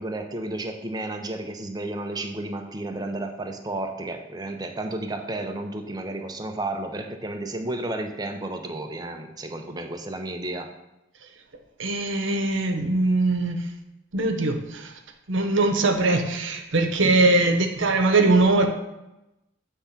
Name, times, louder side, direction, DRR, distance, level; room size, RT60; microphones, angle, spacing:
voice 1, 0.0-10.7 17.0-17.1, right 2 dB, 20° right, 4 dB, 0.7 m, -32 dB
voice 2, 11.8-13.7 14.1-14.9 15.3-18.7, right 2 dB, 75° right, 5 dB, 0.9 m, -21 dB
8.3 x 3.6 x 5.7 m, 0.93 s
head